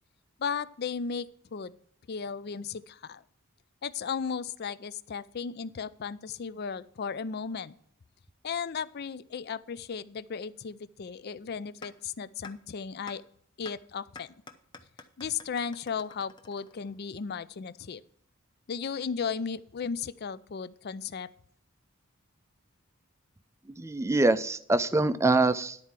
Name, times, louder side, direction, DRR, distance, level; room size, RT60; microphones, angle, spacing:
voice 1, 0.4-1.7 2.1-3.2 3.8-7.7 8.4-13.2 13.6-14.4 15.2-18.0 18.7-21.3, left 6 dB, 50° left, 17 dB, 0.4 m, -35 dB
sound 1, 11.8-11.9 12.4-12.5 13.1-13.2 13.6-13.7 14.1-17.1, left 4 dB, 20° left, 0.7 m, -47 dB
voice 2, 23.8-25.8, right 2 dB, 15° right, 13 dB, 0.4 m, -24 dB
11.0 x 4.6 x 7.4 m, 0.63 s
head